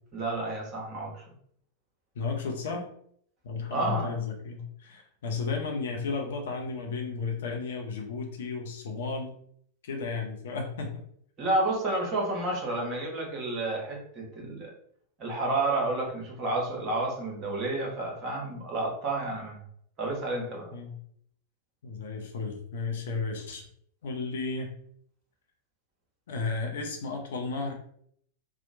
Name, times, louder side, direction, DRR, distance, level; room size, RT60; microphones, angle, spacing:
voice 1, 0.1-1.2 3.7-4.1 11.4-14.7 15.2-19.6 20.0-20.7, right 2 dB, 35° right, -1 dB, 1.0 m, -30 dB
voice 2, 2.2-2.9 3.4-9.4 9.8-11.0 20.7-20.9 21.8-23.6 24.0-24.7 26.3-27.7, left 4 dB, 60° left, 2 dB, 0.5 m, -33 dB
2.8 x 2.0 x 2.6 m, 0.66 s
figure-of-eight pair, 90°, 0 cm